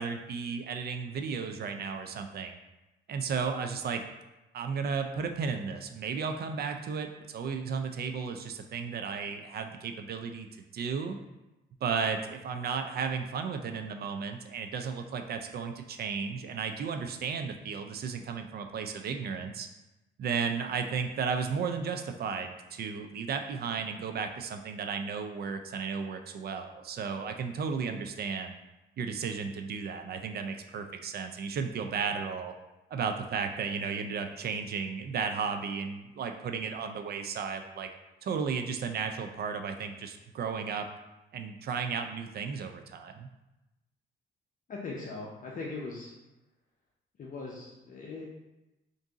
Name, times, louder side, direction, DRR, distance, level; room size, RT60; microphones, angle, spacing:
voice 1, 0.0-2.6 3.1-4.0 4.5-10.5 10.7-11.2 11.8-19.7 20.2-28.6 29.0-32.5 32.9-37.9 38.2-40.9 41.3-43.3, right 6 dB, 55° right, 6 dB, 0.4 m, -34 dB
voice 2, 44.7-46.1 47.2-48.2, left 3 dB, 40° left, -3 dB, 0.6 m, -40 dB
3.5 x 2.6 x 3.8 m, 1.0 s
cardioid pair, 90°, 20 cm